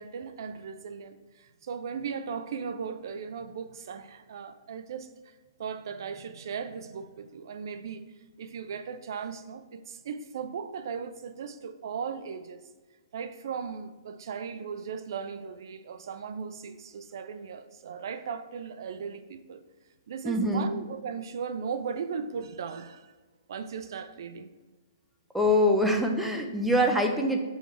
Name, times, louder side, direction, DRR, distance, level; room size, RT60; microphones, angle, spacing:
voice 1, 0.0-5.3 5.6-8.0 8.4-12.6 13.1-19.6 20.1-23.1 23.5-24.5, right 6 dB, 60° right, 11 dB, 0.5 m, -37 dB
voice 2, 20.2-20.7 25.3-27.4, equal, ahead, 4 dB, 0.6 m, -24 dB
6.3 x 5.5 x 4.4 m, 1.3 s
hypercardioid pair, 155°, 2 cm